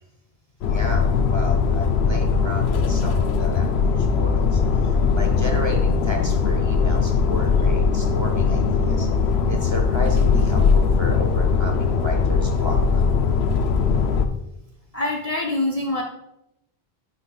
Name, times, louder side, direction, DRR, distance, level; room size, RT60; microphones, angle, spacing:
sound 1, 0.6-14.3, left 5 dB, 85° left, 0.8 m, -20 dB
voice 1, 0.6-4.6 4.9-9.1 9.5-13.0, equal, 30° right, 1 dB, 1.0 m, -32 dB
voice 2, 14.9-16.0, left 2 dB, 40° left, 0 dB, 0.7 m, -24 dB
10.0 x 4.8 x 2.3 m, 0.87 s
omnidirectional pair, 1.1 m